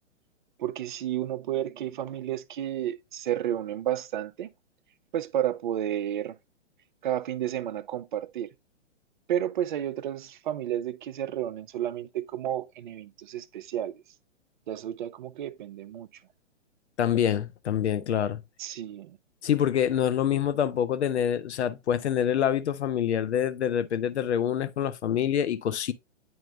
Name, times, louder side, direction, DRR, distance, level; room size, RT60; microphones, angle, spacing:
voice 1, 0.6-4.5 5.1-6.3 7.0-8.5 9.3-14.0 14.7-16.1 18.6-19.2, right 11 dB, 40° right, 0.5 m, -31 dB
voice 2, 17.0-18.4 19.4-25.9, left 9 dB, 65° left, 0.8 m, -26 dB
9.5 x 4.4 x 2.3 m
figure-of-eight pair, 125°, 37 cm